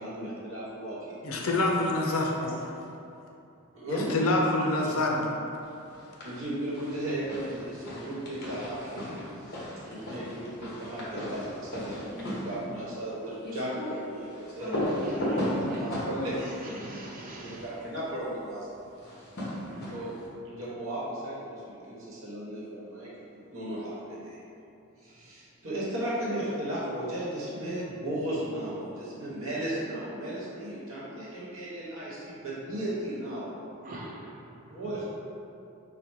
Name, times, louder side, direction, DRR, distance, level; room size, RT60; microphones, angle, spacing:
voice 1, 0.0-1.2 2.4-2.5 3.7-4.1 6.2-9.1 9.4-9.6 9.8-16.7 17.4-18.7 19.9-20.2 20.4-24.4 25.0-33.6 34.7-35.0, right 1 dB, 65° right, -7 dB, 1.2 m, -35 dB
voice 2, 1.2-2.3 3.9-5.3, left 2 dB, 70° left, -1 dB, 0.6 m, -26 dB
sound 1, 5.9-6.4 6.7-17.7 19.0-20.2, left 1 dB, 45° left, 0.9 m, -36 dB
voice 3, 14.6-15.9 16.4-17.8 19.6-20.2 33.8-34.5 34.8-35.0, right 2 dB, 40° right, -3 dB, 0.6 m, -45 dB
4.3 x 2.2 x 4.6 m, 2.7 s
head